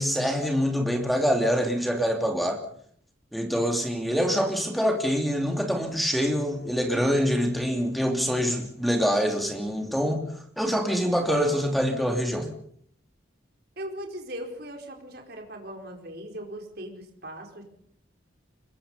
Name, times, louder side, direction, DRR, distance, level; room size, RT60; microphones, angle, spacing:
voice 1, 0.0-2.6 3.3-12.5, equal, ahead, 3 dB, 2.9 m, -25 dB
voice 2, 13.8-17.6, equal, 55° right, 2 dB, 4.7 m, -39 dB
24.0 x 22.0 x 5.6 m, 0.64 s
head